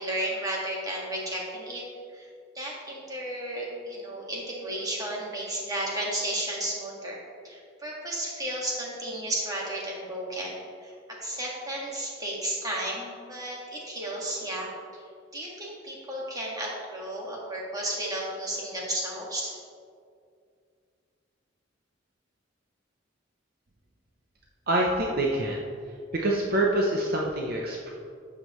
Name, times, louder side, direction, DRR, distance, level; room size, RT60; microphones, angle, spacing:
voice 1, 0.0-1.8 2.1-2.3 2.6-10.9 11.2-14.7 15.3-19.6, right 1 dB, 20° right, -4 dB, 1.8 m, -33 dB
voice 2, 24.7-25.6 26.1-27.9, right 1 dB, 50° right, -1 dB, 0.8 m, -26 dB
11.5 x 7.5 x 3.1 m, 2.3 s
head